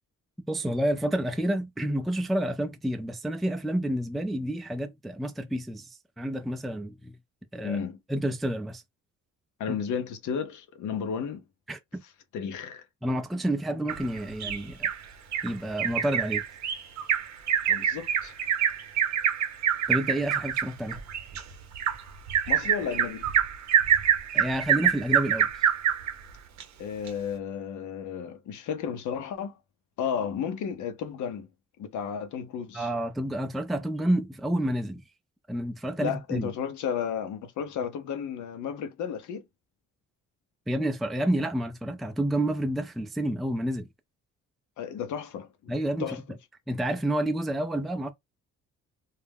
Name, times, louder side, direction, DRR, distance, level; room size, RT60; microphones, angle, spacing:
voice 1, 0.5-7.2 7.5-7.8 8.1-8.8 9.7-9.8 11.7-12.0 13.0-14.9 15.4-16.4 19.9-21.0 24.3-25.5 32.7-35.0 35.5-36.5 40.7-43.9 45.7-46.2 46.7-48.1, right 1 dB, ahead, 0.3 m, -29 dB
voice 2, 7.6-8.0 9.6-11.4 12.3-12.8 17.7-18.3 22.5-23.3 26.8-29.5 30.0-31.5 31.8-32.9 36.0-39.4 44.8-45.7 46.0-46.2, left 7 dB, 75° left, 0.7 m, -33 dB
Bird vocalization bird call bird song, 13.9-15.0 15.3-15.5 15.8-26.1 26.6-26.7 27.1-27.2, right 9 dB, 65° right, 0.7 m, -25 dB
2.4 x 2.1 x 3.3 m
cardioid pair, 90°, 30 cm